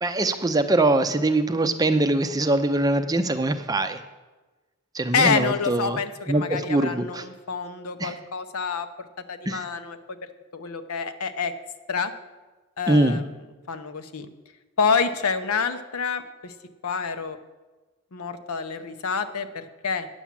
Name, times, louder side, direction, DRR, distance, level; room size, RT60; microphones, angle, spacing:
voice 1, 0.0-4.0 4.9-6.0 6.3-7.2 8.0-8.1 9.5-9.6 12.9-13.2, right 2 dB, 15° right, 9 dB, 0.5 m, -23 dB
voice 2, 5.1-10.2 10.5-11.5 11.9-12.1 12.8-13.2 13.7-14.3 14.8-16.5 16.8-17.4 18.1-20.1, left 5 dB, 85° left, 9 dB, 0.8 m, -27 dB
9.8 x 7.2 x 7.3 m, 1.2 s
head